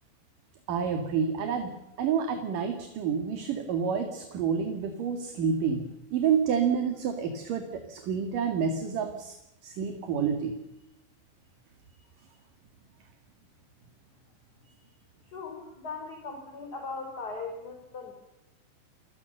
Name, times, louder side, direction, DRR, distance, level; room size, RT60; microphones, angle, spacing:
voice 1, 0.7-9.3 9.6-10.5, right 6 dB, 55° right, 6 dB, 3.4 m, -29 dB
voice 2, 15.3-18.1, left 4 dB, 25° left, 4 dB, 3.8 m, -39 dB
30.0 x 23.5 x 6.7 m, 0.87 s
omnidirectional pair, 5.0 m